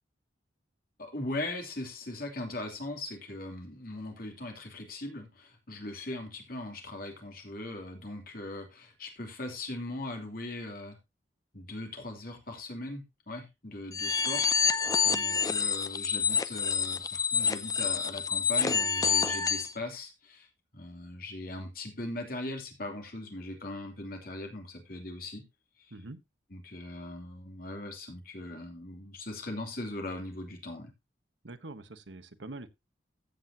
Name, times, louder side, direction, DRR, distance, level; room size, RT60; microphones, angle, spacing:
voice 1, 1.0-11.0 11.5-14.5 15.1-20.5 20.7-25.4 25.8-25.9 26.5-30.9, left 2 dB, 55° left, 2.9 m, -40 dB
sound 1, 13.9-19.7, left 6 dB, 20° left, 0.6 m, -28 dB
voice 2, 14.9-15.2 25.9-26.2 31.4-32.7, right 2 dB, 80° right, 1.1 m, -45 dB
15.0 x 7.8 x 2.7 m
head